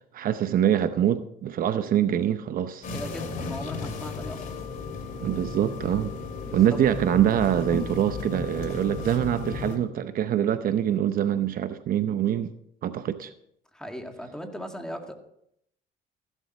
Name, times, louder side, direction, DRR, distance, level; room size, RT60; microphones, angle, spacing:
voice 1, 0.1-2.9 5.2-6.1 6.5-12.5 12.8-13.3, right 10 dB, 60° right, 0.8 m, -24 dB
sound 1, 2.8-9.8, left 3 dB, 50° left, 2.5 m, -34 dB
voice 2, 2.9-4.4 6.4-6.8 13.7-15.1, equal, 5° left, 2.1 m, -38 dB
14.5 x 12.0 x 4.3 m
cardioid pair, 110°, 17 cm